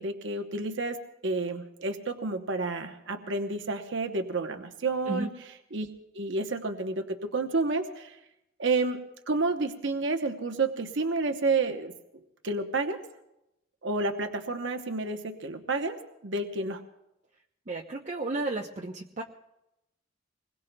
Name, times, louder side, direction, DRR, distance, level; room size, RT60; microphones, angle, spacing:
voice 1, 0.0-5.3 5.7-5.9 6.1-8.2 8.6-11.9 12.4-13.0 13.8-16.0 16.2-16.8, right 3 dB, 65° right, 6 dB, 0.9 m, -30 dB
voice 2, 17.7-19.2, right 2 dB, 40° right, 0 dB, 0.8 m, -33 dB
25.5 x 21.0 x 2.3 m, 0.87 s
head